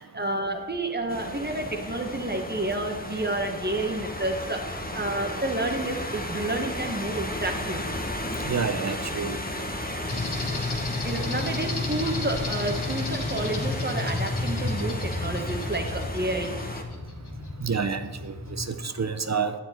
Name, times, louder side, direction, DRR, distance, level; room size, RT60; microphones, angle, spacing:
voice 1, 0.0-4.6 4.9-7.9 11.0-16.6, right 2 dB, 25° right, 4 dB, 1.4 m, -30 dB
sound 1, 1.1-16.8, left 1 dB, 20° left, 1.2 m, -34 dB
voice 2, 8.4-9.4 17.6-19.5, right 5 dB, 40° right, 9 dB, 0.7 m, -28 dB
sound 2, 10.1-18.8, left 2 dB, 70° left, 1.8 m, -32 dB
9.2 x 8.8 x 4.4 m, 1.3 s
wide cardioid pair, 55°, 41 cm